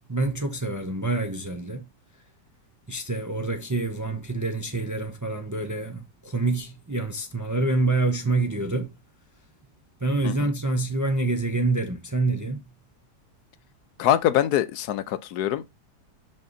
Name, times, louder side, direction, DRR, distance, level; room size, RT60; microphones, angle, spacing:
voice 1, 0.1-1.9 2.9-8.9 10.0-12.7, right 2 dB, 15° right, 0.6 m, -26 dB
voice 2, 14.0-15.7, left 11 dB, 80° left, 1.2 m, -23 dB
5.5 x 5.4 x 4.0 m
omnidirectional pair, 1.7 m